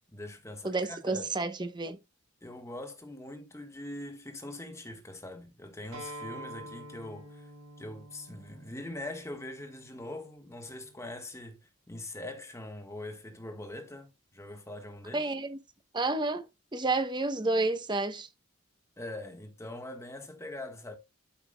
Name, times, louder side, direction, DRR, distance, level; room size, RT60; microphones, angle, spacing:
voice 1, 0.1-1.3 2.4-7.5 7.8-15.2 19.0-21.0, left 1 dB, 15° left, 1.4 m, -42 dB
voice 2, 0.6-2.0 15.1-15.6 15.9-16.5 16.7-18.3, right 2 dB, 20° right, 0.8 m, -30 dB
Acoustic guitar, 5.9-11.1, right 1 dB, 75° right, 5.7 m, -48 dB
12.0 x 5.8 x 2.2 m
head